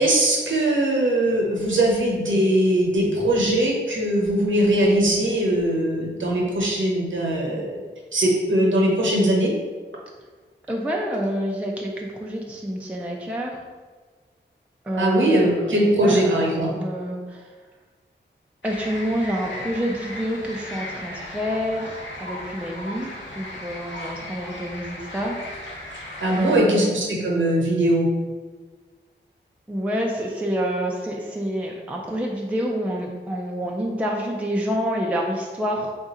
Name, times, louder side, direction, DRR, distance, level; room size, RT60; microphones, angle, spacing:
voice 1, 0.0-7.8 8.1-9.5 15.0-16.7 26.2-28.1, right 1 dB, 85° right, -2 dB, 0.9 m, -20 dB
voice 2, 10.7-13.6 14.8-17.5 18.6-25.4 26.4-26.9 29.7-35.9, equal, 5° right, -1 dB, 0.4 m, -28 dB
sound 1, 18.6-26.6, left 1 dB, 80° left, 0.8 m, -36 dB
3.6 x 2.5 x 4.1 m, 1.4 s
wide cardioid pair, 85°, 19 cm